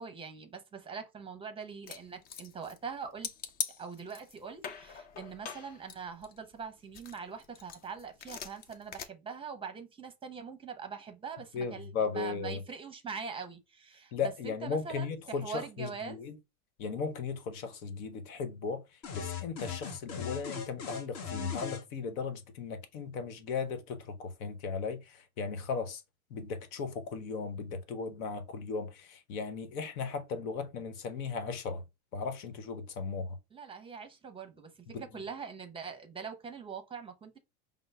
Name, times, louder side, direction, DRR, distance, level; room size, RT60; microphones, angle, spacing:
voice 1, 0.0-3.3 3.8-16.2 33.5-34.7 35.0-37.4, right 6 dB, 10° right, 0.7 m, -43 dB
sound 1, 1.9-2.9 3.2-4.4 4.6-6.6 6.9-9.0, left 7 dB, 25° left, 0.3 m, -41 dB
voice 2, 11.5-12.6 14.1-16.4 16.8-18.8 19.1-26.0 26.3-31.8 32.1-33.4 34.9-35.2, left 5 dB, 70° left, 1.1 m, -36 dB
sound 2, 19.0-21.9, left 7 dB, 40° left, 1.1 m, -38 dB
5.3 x 2.0 x 3.3 m
supercardioid pair, 120°, 43 cm